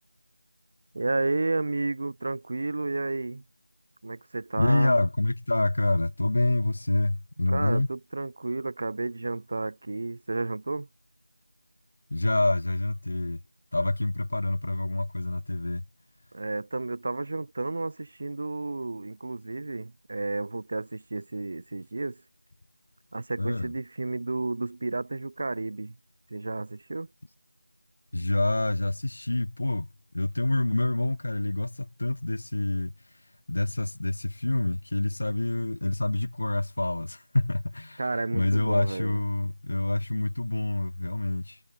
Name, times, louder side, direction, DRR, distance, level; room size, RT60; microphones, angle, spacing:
voice 1, 0.9-3.4 4.0-4.9 7.5-10.9 16.3-22.2 23.1-25.9 26.3-27.1 38.0-39.1, right 2 dB, 45° right, 3.6 m, -31 dB
voice 2, 4.6-7.9 12.1-13.4 13.7-15.8 23.4-23.7 28.1-29.9 30.1-38.0 38.3-41.6, left 2 dB, 60° left, 3.3 m, -27 dB
figure-of-eight pair, 175°, 0 cm